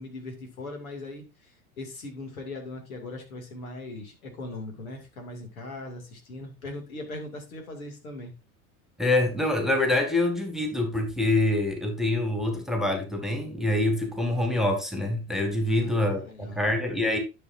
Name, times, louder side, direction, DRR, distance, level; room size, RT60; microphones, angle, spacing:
voice 1, 0.0-1.5 1.8-8.3 15.6-16.7, left 2 dB, 70° left, 2.6 m, -39 dB
voice 2, 9.0-17.2, left 2 dB, ahead, 1.9 m, -25 dB
11.0 x 6.5 x 2.7 m
figure-of-eight pair, 75°, 44 cm